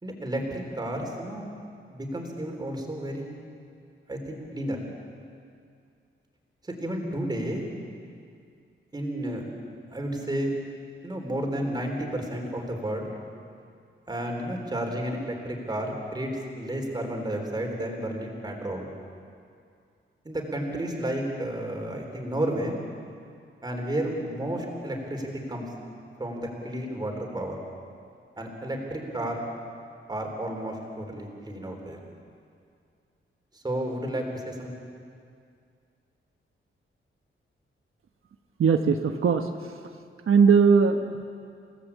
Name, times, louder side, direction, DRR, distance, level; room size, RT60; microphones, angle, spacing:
voice 1, 0.0-1.5 1.9-3.3 4.1-4.8 6.6-7.6 8.9-9.5 9.9-10.5 11.0-13.1 14.1-16.3 16.6-18.8 20.2-22.8 23.6-25.7 26.2-27.6 28.4-29.4 30.1-32.0 33.5-34.7, right 1 dB, 20° right, 1 dB, 3.8 m, -32 dB
voice 2, 38.6-39.8 40.3-41.2, right 5 dB, 80° right, 5 dB, 1.2 m, -20 dB
29.0 x 17.5 x 8.5 m, 2.3 s
wide cardioid pair, 170°, 21 cm